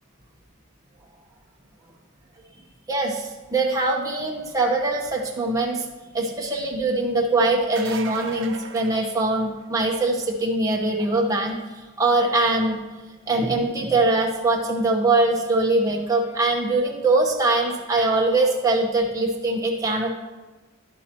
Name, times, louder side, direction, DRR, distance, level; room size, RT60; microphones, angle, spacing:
voice 1, 2.9-5.8 6.1-11.6 12.0-12.8 13.3-20.1, right 2 dB, 15° right, -1 dB, 1.1 m, -22 dB
sound 1, 7.6-9.8 15.3-15.4 17.3-17.4, right 4 dB, 60° right, 0.8 m, -37 dB
12.0 x 11.5 x 3.0 m, 1.2 s
head